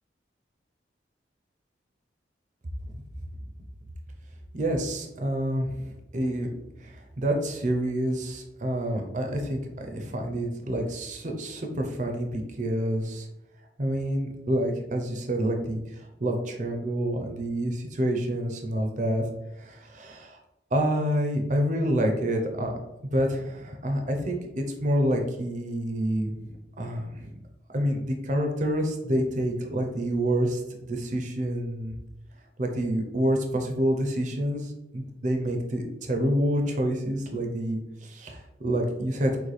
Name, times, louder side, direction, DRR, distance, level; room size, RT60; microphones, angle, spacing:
voice 1, 4.5-6.5 6.8-13.3 13.8-19.2 19.6-20.4 20.7-22.7 23.1-27.3 27.7-32.0 32.6-39.3, equal, 40° right, 3 dB, 0.6 m, -28 dB
6.3 x 2.2 x 3.2 m, 0.93 s
head